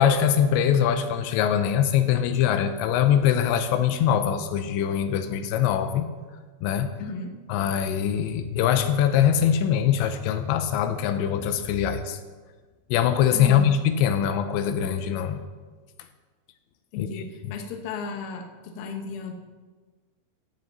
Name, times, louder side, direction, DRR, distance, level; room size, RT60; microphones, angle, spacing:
voice 1, 0.0-6.1 6.6-6.9 7.5-12.2 12.9-15.4 17.0-17.5, left 9 dB, 85° left, 8 dB, 2.9 m, -23 dB
voice 2, 7.0-7.3 13.3-13.7 16.9-19.3, left 5 dB, 70° left, 4 dB, 2.4 m, -35 dB
15.0 x 9.1 x 4.0 m, 1.4 s
omnidirectional pair, 5.1 m